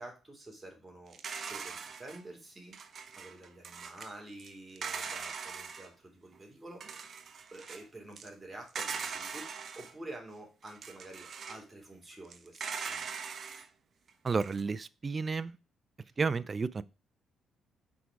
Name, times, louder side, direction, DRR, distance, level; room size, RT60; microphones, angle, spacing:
voice 1, 0.0-2.8 3.2-7.1 7.5-13.1 16.0-16.1, right 2 dB, 15° right, 3.0 m, -49 dB
sound 1, 1.1-2.2 2.7-4.1 4.4-4.5 4.8-5.9 6.3-6.4 6.8-7.8 8.2-8.3 8.7-9.9 10.6-11.6 12.2-13.7 14.1-14.6, right 6 dB, 50° right, 0.9 m, -41 dB
voice 2, 14.2-15.6 16.2-16.8, right 4 dB, 35° right, 0.5 m, -31 dB
6.3 x 4.6 x 4.6 m
cardioid pair, 90°, 0 cm